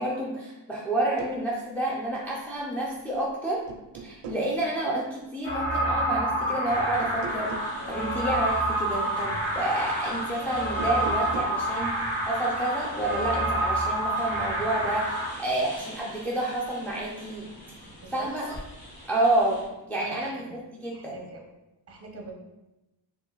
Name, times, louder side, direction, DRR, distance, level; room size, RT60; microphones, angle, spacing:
voice 1, 0.0-3.6 4.0-17.5 18.1-18.5 19.1-19.6 19.9-21.2, right 1 dB, 5° left, -5 dB, 0.6 m, -29 dB
sound 1, 1.0-1.4 3.0-3.3 3.7-4.5 7.0-7.8 10.7-11.6, right 5 dB, 70° right, 0.5 m, -39 dB
sound 2, 5.4-15.3, right 1 dB, 85° left, 1.3 m, -28 dB
sound 3, 6.7-19.7, left 1 dB, 55° left, 1.4 m, -46 dB
voice 2, 20.0-20.6 20.9-21.4 21.9-22.3, right 3 dB, 30° right, 1 dB, 0.8 m, -43 dB
4.3 x 2.6 x 3.1 m, 0.97 s
cardioid pair, 85°, 46 cm